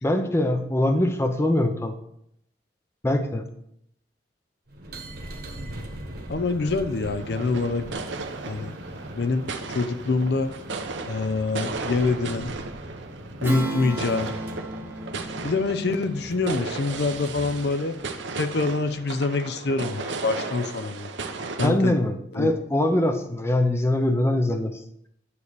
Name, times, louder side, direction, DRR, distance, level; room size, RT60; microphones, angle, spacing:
voice 1, 0.0-1.9 3.0-3.5 21.6-24.8, left 1 dB, 15° left, 6 dB, 0.5 m, -23 dB
sound 1, 4.7-19.1, right 1 dB, 55° right, 1.3 m, -41 dB
voice 2, 6.3-7.8 8.5-8.7 9.1-9.5 9.7-10.5 11.1-12.5 13.4-14.3 15.4-17.9 18.4-21.1 21.6-22.0 22.3-22.5, left 3 dB, 60° left, 10 dB, 0.5 m, -25 dB
sound 2, 7.2-21.7, right 4 dB, 80° right, 0.8 m, -35 dB
Strum, 13.4-18.3, right 2 dB, 10° right, 0.9 m, -35 dB
9.6 x 3.2 x 6.7 m, 0.74 s
head